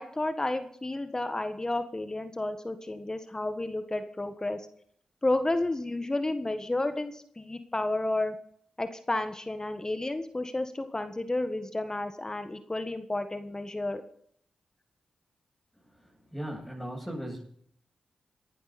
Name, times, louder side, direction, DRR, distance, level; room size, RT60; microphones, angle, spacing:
voice 1, 0.0-4.6 5.2-8.3 8.8-14.0, left 2 dB, 25° left, 8 dB, 1.5 m, -31 dB
voice 2, 15.9-17.4, equal, ahead, -5 dB, 7.8 m, -38 dB
18.5 x 11.5 x 4.3 m, 0.63 s
supercardioid pair, 40°, 2 cm